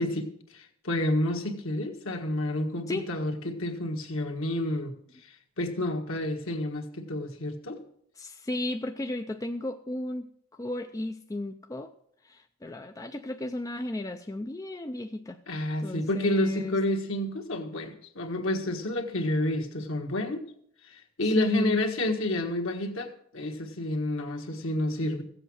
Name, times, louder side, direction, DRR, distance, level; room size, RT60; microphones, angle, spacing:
voice 1, 0.0-4.9 5.2-7.8 15.5-20.4 20.8-25.2, left 1 dB, 60° left, 3 dB, 1.5 m, -30 dB
voice 2, 8.2-10.3 10.5-11.9 12.2-15.4 15.8-16.8 21.2-21.8, left 1 dB, 15° left, 6 dB, 0.4 m, -34 dB
15.0 x 7.9 x 6.2 m, 0.69 s
head